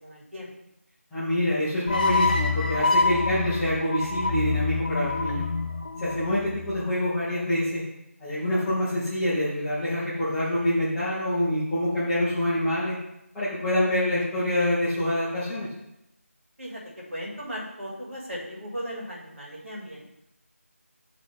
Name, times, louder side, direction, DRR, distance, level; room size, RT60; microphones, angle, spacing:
voice 1, 0.0-0.5 16.6-16.8 17.1-20.0, equal, 60° right, -4 dB, 2.7 m, -37 dB
voice 2, 1.1-5.4 6.0-7.8 8.2-13.0 13.3-15.7, left 1 dB, 5° left, -15 dB, 0.8 m, -26 dB
sound 1, 1.9-7.1, left 4 dB, 35° left, 0.6 m, -26 dB
9.8 x 3.8 x 3.6 m, 0.86 s
figure-of-eight pair, 170°, 8 cm